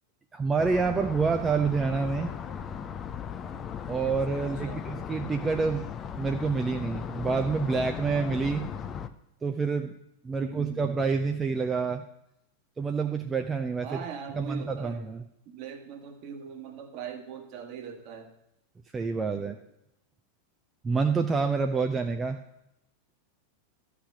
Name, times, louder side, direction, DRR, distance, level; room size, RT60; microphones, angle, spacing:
voice 1, 0.3-2.3 3.9-5.9 6.1-8.7 9.4-9.9 10.2-12.0 12.8-14.0 14.3-15.2 18.9-19.6 20.8-22.4, right 4 dB, 15° right, 5 dB, 0.6 m, -27 dB
sound 1, 0.6-9.1, left 7 dB, 25° left, 0.6 m, -37 dB
voice 2, 4.4-4.9 10.4-10.8 13.8-15.1 15.4-18.3 19.4-19.6, right 7 dB, 40° right, 6 dB, 1.5 m, -41 dB
13.0 x 5.1 x 6.9 m, 0.81 s
figure-of-eight pair, 90°, 0 cm